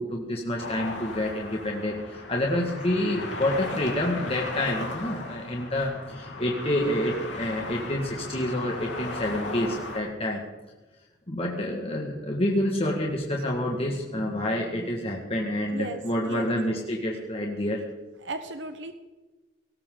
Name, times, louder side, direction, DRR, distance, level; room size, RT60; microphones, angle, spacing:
voice 1, 0.0-10.4 11.3-17.8, left 1 dB, 35° left, -1 dB, 1.9 m, -28 dB
sound 1, 0.6-10.0, left 2 dB, 85° left, 3.4 m, -36 dB
voice 2, 15.7-16.0 16.3-16.5 18.2-18.9, right 3 dB, 90° right, 8 dB, 1.1 m, -35 dB
19.5 x 18.5 x 3.9 m, 1.2 s
head